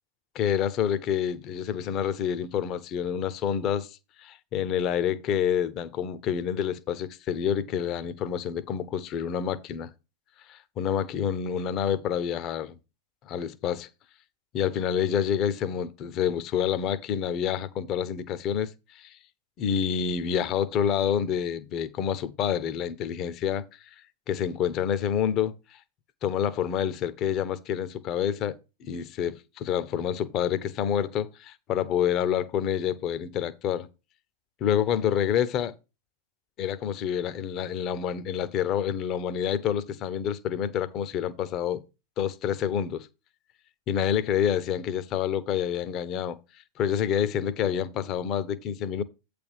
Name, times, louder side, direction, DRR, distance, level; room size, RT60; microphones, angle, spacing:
voice 1, 0.3-9.9 10.5-12.8 13.2-13.9 14.5-19.2 19.6-23.6 24.3-25.8 26.2-33.9 34.6-35.7 36.6-41.8 42.2-43.1 43.9-46.4 46.8-49.0, left 9 dB, 35° left, 0.7 m, -28 dB
8.4 x 3.4 x 6.3 m
figure-of-eight pair, 95°, 0 cm